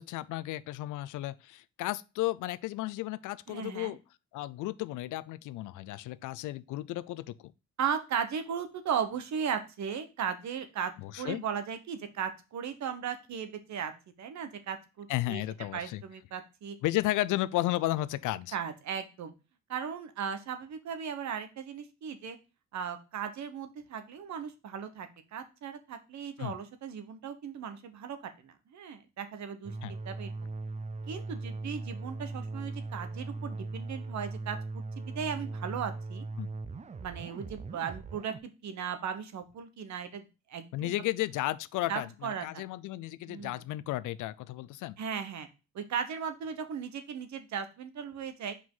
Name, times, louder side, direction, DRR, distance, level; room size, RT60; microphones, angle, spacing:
voice 1, 0.0-4.0 4.3-7.5 11.0-11.4 15.1-16.0 16.8-18.6 26.4-26.5 29.8-29.9 36.4-36.5 40.7-45.0, left 16 dB, 85° left, 0.5 m, -33 dB
voice 2, 3.5-4.0 7.8-10.9 11.2-13.9 14.2-15.4 15.7-16.8 18.5-19.3 19.7-22.4 22.7-28.2 28.4-30.3 31.1-34.6 35.0-36.2 37.0-40.2 40.5-40.9 41.9-42.6 43.3-43.6 45.0-45.5 45.7-48.5, right 7 dB, 65° right, 1.2 m, -37 dB
sound 1, 29.6-38.4, right 3 dB, 25° right, 0.5 m, -39 dB
5.6 x 5.0 x 3.8 m
cardioid pair, 90°, 30 cm